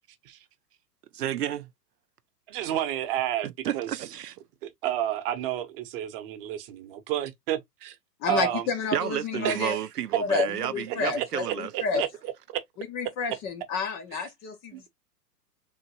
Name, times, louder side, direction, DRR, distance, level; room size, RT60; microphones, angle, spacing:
voice 1, 1.1-1.7 3.4-4.4 8.9-12.0, right 11 dB, 70° right, 0.6 m, -31 dB
voice 2, 2.5-3.5 3.7-4.0 4.6-8.0 8.3-8.6 9.4-9.8 10.9-11.2 11.7-12.6 14.1-14.2 14.7-14.9, right 12 dB, 35° right, 0.9 m, -31 dB
voice 3, 8.2-9.7 10.2-12.0 12.8-14.9, left 4 dB, 20° left, 0.5 m, -30 dB
3.9 x 3.0 x 2.8 m
figure-of-eight pair, 105°, 50 cm